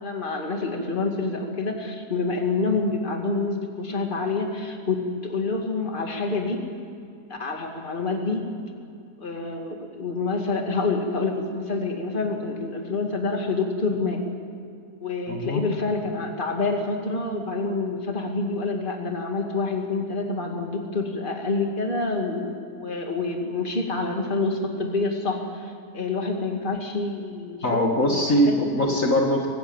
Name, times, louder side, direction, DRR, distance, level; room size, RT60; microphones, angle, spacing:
voice 1, 0.0-6.6 7.3-8.4 9.2-14.2 15.0-27.6 28.1-29.0, left 3 dB, 30° left, 2 dB, 2.4 m, -27 dB
voice 2, 15.3-15.6 27.6-29.5, equal, 55° left, 1 dB, 2.2 m, -22 dB
25.0 x 15.0 x 9.0 m, 2.5 s
omnidirectional pair, 1.7 m